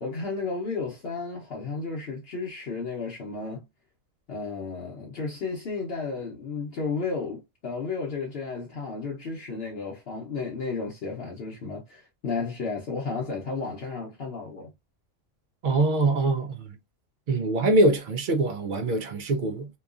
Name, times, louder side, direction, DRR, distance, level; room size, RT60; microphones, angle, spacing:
voice 1, 0.0-3.6 4.3-14.7, left 4 dB, 55° left, 0.9 m, -33 dB
voice 2, 15.6-16.7 17.3-19.7, right 2 dB, 60° right, 0.5 m, -23 dB
3.0 x 2.2 x 2.3 m
omnidirectional pair, 1.3 m